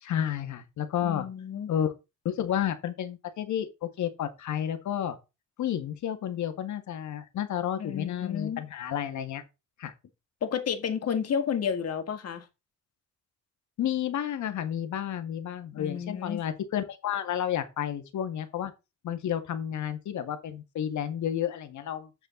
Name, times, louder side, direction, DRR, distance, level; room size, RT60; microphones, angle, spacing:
voice 1, 0.0-1.3 1.7-1.9 2.3-5.2 5.6-9.4 9.8-9.9 13.8-18.7 19.0-22.1, left 10 dB, 70° left, 1.9 m, -31 dB
voice 2, 1.0-1.7 7.8-8.6 10.4-12.4 15.7-16.4, left 7 dB, 55° left, 1.9 m, -31 dB
7.9 x 6.9 x 3.8 m
cardioid pair, 90°, 30 cm